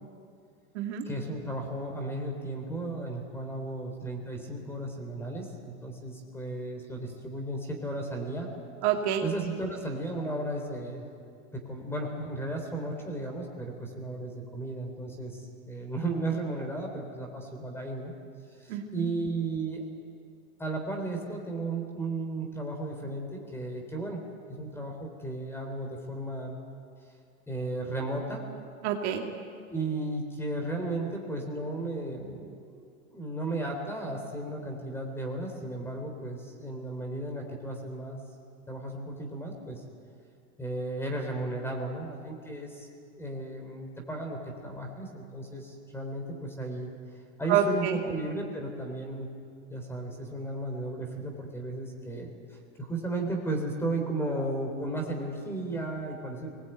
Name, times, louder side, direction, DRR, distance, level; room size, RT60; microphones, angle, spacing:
voice 1, 1.1-8.5 9.2-11.1 11.5-18.1 18.6-19.8 20.6-24.2 24.5-26.6 27.5-28.4 29.7-38.2 38.7-39.8 40.6-42.9 43.2-46.9 47.4-49.3 49.7-56.5, right 2 dB, 5° left, 2 dB, 3.6 m, -34 dB
voice 2, 8.8-9.2 18.7-19.1 28.8-29.2 47.5-48.0, right 8 dB, 55° right, 2 dB, 2.7 m, -27 dB
24.5 x 20.0 x 9.1 m, 2.3 s
supercardioid pair, 155°, 41 cm